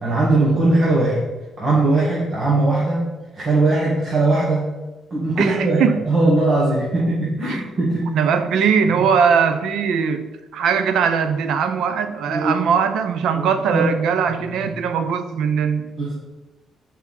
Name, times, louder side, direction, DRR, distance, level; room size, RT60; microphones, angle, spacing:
voice 1, 0.0-1.2 1.6-4.6 5.1-8.2 9.0-9.1 12.3-12.6 13.3-13.9 16.0-16.1, right 2 dB, 50° right, -7 dB, 2.0 m, -19 dB
voice 2, 5.4-6.0 7.4-7.6 8.1-15.8, right 6 dB, 80° right, 9 dB, 0.6 m, -20 dB
7.4 x 5.4 x 4.2 m, 1.1 s
cardioid pair, 90°, 0 cm